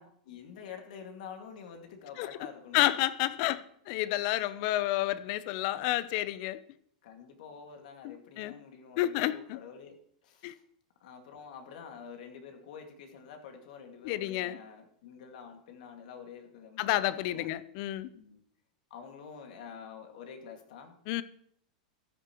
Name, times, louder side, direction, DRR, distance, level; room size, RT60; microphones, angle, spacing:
voice 1, 0.0-3.0 7.0-10.0 10.2-10.6 11.0-17.5 18.1-18.4 18.9-21.0, left 7 dB, 70° left, 2.1 m, -47 dB
voice 2, 2.7-6.6 8.0-8.5 9.0-9.6 10.4-10.5 14.0-14.6 16.8-18.1 21.1-21.2, left 15 dB, 55° left, 0.6 m, -30 dB
14.5 x 9.8 x 3.1 m
hypercardioid pair, 120°, 4 cm